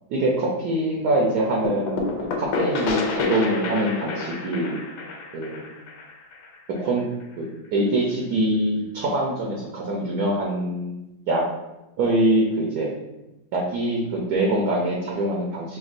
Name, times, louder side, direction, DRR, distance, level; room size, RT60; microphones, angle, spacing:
voice 1, 0.1-4.8 5.3-5.7 6.8-7.0 7.4-11.4 12.0-12.9 13.5-15.8, right 1 dB, 65° right, -2 dB, 1.0 m, -24 dB
sound 1, 1.6-7.2, left 4 dB, 80° left, 1.4 m, -29 dB
6.0 x 2.3 x 2.5 m, 0.95 s
omnidirectional pair, 2.3 m